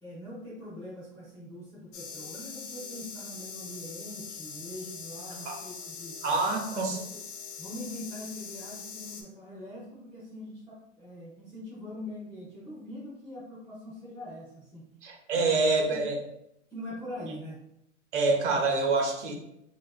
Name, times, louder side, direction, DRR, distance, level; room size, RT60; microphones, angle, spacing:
voice 1, 0.0-6.2 6.7-7.2 7.6-14.9 15.3-15.6 15.9-16.0 16.7-17.6, left 1 dB, 5° left, -10 dB, 0.5 m, -43 dB
sound 1, 1.9-9.2, left 6 dB, 60° left, 0.6 m, -42 dB
voice 2, 6.2-7.0 15.0-16.2 18.1-19.3, right 3 dB, 65° right, 1 dB, 0.8 m, -26 dB
3.3 x 2.4 x 2.3 m, 0.78 s
supercardioid pair, 160°, 38 cm